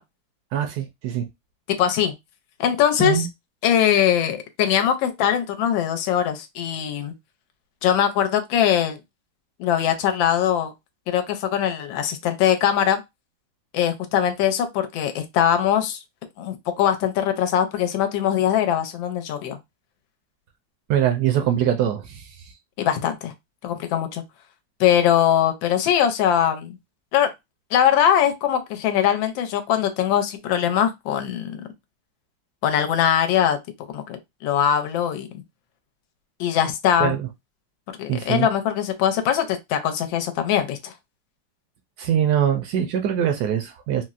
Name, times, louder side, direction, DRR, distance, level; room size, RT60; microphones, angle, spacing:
voice 1, 0.5-1.2 3.0-3.3 20.9-22.3 37.0-37.3 38.1-38.5 42.0-44.0, right 9 dB, 70° right, 0.9 m, -23 dB
voice 2, 1.7-2.1 2.6-3.3 3.6-7.1 7.8-9.0 9.6-10.7 11.1-13.0 13.7-16.0 16.4-19.6 22.8-23.3 23.6-24.2 24.8-26.8 27.1-27.3 27.7-31.6 32.6-33.6 33.9-35.3 36.4-37.1 38.0-40.9, left 9 dB, 90° left, 1.3 m, -21 dB
4.0 x 2.0 x 2.4 m
omnidirectional pair, 2.0 m